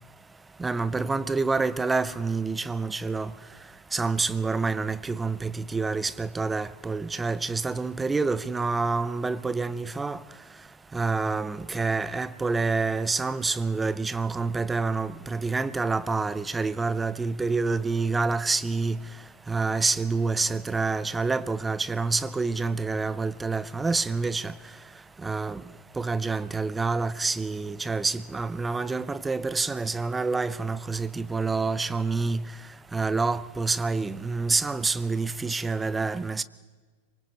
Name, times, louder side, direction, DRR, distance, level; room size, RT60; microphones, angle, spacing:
voice 1, 0.6-3.3 3.9-10.2 10.9-19.0 19.5-24.5 25.2-25.6 26.0-32.4 32.9-36.4, right 4 dB, 10° right, 0.7 m, -27 dB
26.5 x 24.0 x 4.3 m
figure-of-eight pair, 90°, 0 cm